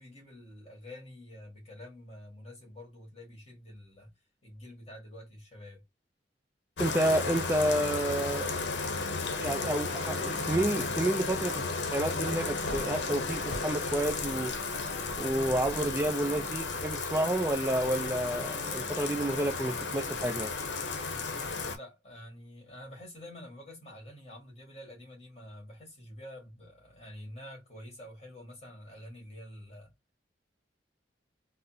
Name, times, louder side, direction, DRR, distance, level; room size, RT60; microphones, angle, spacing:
voice 1, 0.0-4.1 4.4-5.8 20.9-29.9, left 1 dB, 35° left, 1.8 m, -48 dB
Bathtub (filling or washing), 6.8-21.8, left 4 dB, 80° left, 0.7 m, -33 dB
voice 2, 6.8-8.6 9.4-14.5 15.2-20.5, right 1 dB, 15° right, 0.4 m, -30 dB
3.9 x 2.0 x 2.7 m
head